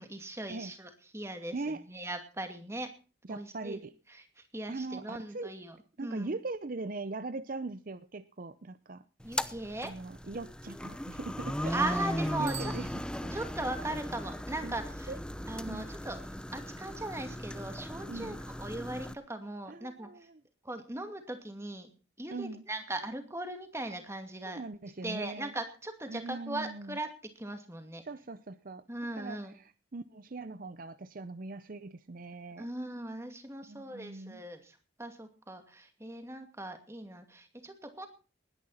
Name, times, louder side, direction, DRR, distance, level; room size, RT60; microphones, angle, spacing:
voice 1, 0.0-2.9 3.3-3.8 4.5-6.3 9.2-9.9 11.7-12.7 13.3-15.1 15.5-20.1 20.6-21.9 22.2-24.6 25.0-27.1 27.4-28.0 28.9-29.5 32.6-38.1, right 1 dB, 15° right, 6 dB, 2.4 m, -39 dB
voice 2, 1.5-1.9 3.2-3.9 4.7-5.5 6.0-9.0 9.8-11.8 12.4-13.3 14.6-14.8 15.1-15.2 15.7-15.9 18.1-18.4 19.7-20.4 22.3-22.7 24.5-25.5 26.1-27.0 28.0-28.8 29.2-32.7 33.7-34.4, right 3 dB, 45° right, 13 dB, 0.6 m, -41 dB
sound 1, 9.2-19.1, equal, 5° left, 0.7 m, -37 dB
Bicycle bell, 12.4-13.7, right 16 dB, 65° right, 1.3 m, -47 dB
20.0 x 10.5 x 4.2 m, 0.36 s
head